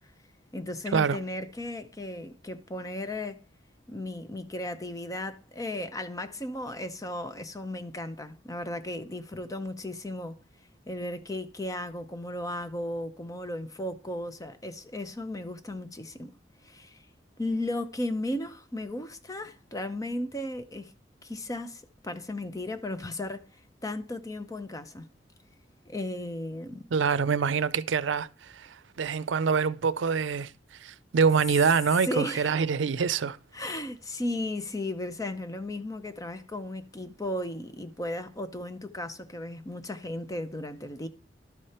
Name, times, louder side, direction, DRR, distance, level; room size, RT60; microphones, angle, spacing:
voice 1, 0.5-3.4 3.9-10.4 10.9-16.3 16.6-17.0 17.4-20.9 21.2-25.1 25.9-26.9 32.0-32.6 33.5-41.1, left 1 dB, 20° left, 0.7 m, -35 dB
voice 2, 26.9-28.3 28.5-28.7 29.0-30.5 30.8-33.4, right 6 dB, 85° right, 0.5 m, -25 dB
12.0 x 5.0 x 4.3 m
head